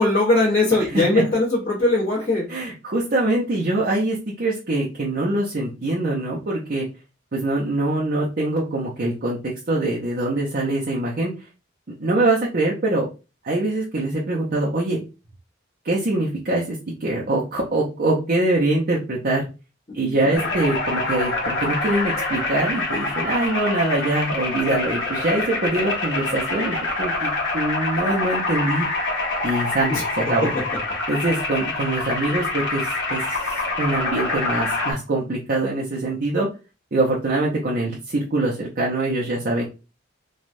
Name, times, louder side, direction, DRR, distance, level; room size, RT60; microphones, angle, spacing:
voice 1, 0.0-2.5 19.9-20.4 29.9-30.0, left 2 dB, 35° left, -9 dB, 1.1 m, -20 dB
voice 2, 2.5-6.9 7.3-11.3 12.0-13.1 13.4-15.0 15.8-19.4 19.9-28.9 29.4-29.9 30.2-30.5 31.1-36.5 36.9-39.6, right 2 dB, 50° right, -4 dB, 0.6 m, -23 dB
sound 1, 20.3-34.9, left 2 dB, 70° left, 1.1 m, -26 dB
3.1 x 2.3 x 2.5 m, 0.30 s
head